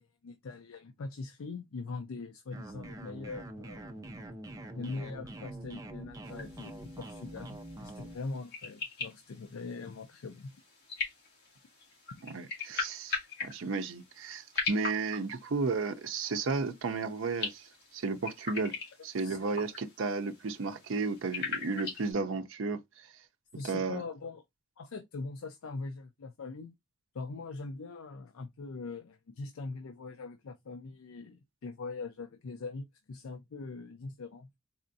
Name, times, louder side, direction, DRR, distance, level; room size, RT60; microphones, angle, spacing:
voice 1, 0.0-4.1 4.8-10.5 19.2-19.7 23.6-24.4 24.8-26.7 27.1-34.6, left 3 dB, 80° left, 0.5 m, -42 dB
sound 1, 2.5-8.2, right 1 dB, 15° right, 0.5 m, -45 dB
sound 2, 6.2-22.1, left 4 dB, 50° left, 1.8 m, -41 dB
voice 2, 12.2-18.8 19.0-23.1 23.6-24.0, right 4 dB, 65° right, 0.5 m, -33 dB
4.2 x 2.5 x 2.6 m
head